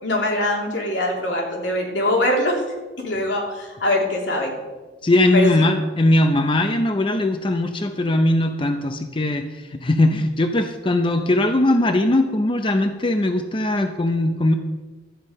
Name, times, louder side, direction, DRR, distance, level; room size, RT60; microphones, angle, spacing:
voice 1, 0.0-2.6 3.0-4.6 5.3-5.5, left 1 dB, 85° left, -1 dB, 3.1 m, -22 dB
voice 2, 5.0-14.5, left 1 dB, 30° left, 6 dB, 0.6 m, -20 dB
12.5 x 9.3 x 5.3 m, 1.2 s
head